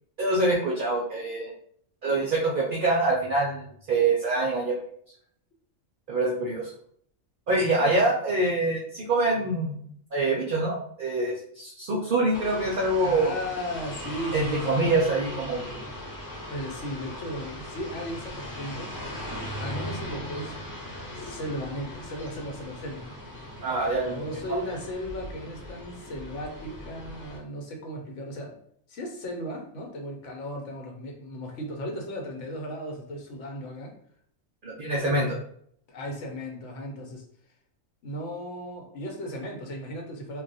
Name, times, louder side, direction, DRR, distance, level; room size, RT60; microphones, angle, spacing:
voice 1, 0.2-1.5 2.0-4.8 6.1-6.7 7.5-9.8 10.1-13.3 14.3-15.6 23.6-24.2 24.5-24.6 34.6-35.4, right 2 dB, 55° right, -3 dB, 0.6 m, -25 dB
sound 1, 12.3-27.4, left 1 dB, 15° left, 0.9 m, -39 dB
voice 2, 13.0-14.9 16.3-18.9 19.6-20.5 21.1-23.2 24.0-28.6 28.9-33.9 35.1-35.4 35.9-37.2 38.0-40.4, equal, 70° left, 1 dB, 1.1 m, -36 dB
2.3 x 2.3 x 3.9 m, 0.64 s
omnidirectional pair, 1.3 m